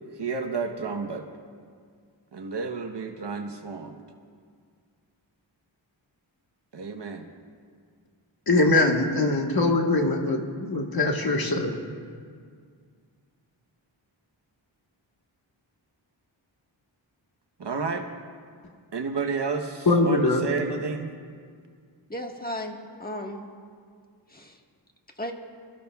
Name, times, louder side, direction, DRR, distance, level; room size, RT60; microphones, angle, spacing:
voice 1, 0.2-1.2 2.3-4.0 6.7-7.3 17.6-18.0 18.9-21.1, right 4 dB, 60° right, 5 dB, 1.1 m, -31 dB
voice 2, 8.5-11.7 19.9-20.4, left 2 dB, 50° left, 2 dB, 1.5 m, -22 dB
voice 3, 22.1-23.5 24.3-24.6 25.2-25.3, left 1 dB, 20° left, 2 dB, 1.5 m, -35 dB
26.5 x 14.0 x 2.4 m, 2.1 s
wide cardioid pair, 75°, 46 cm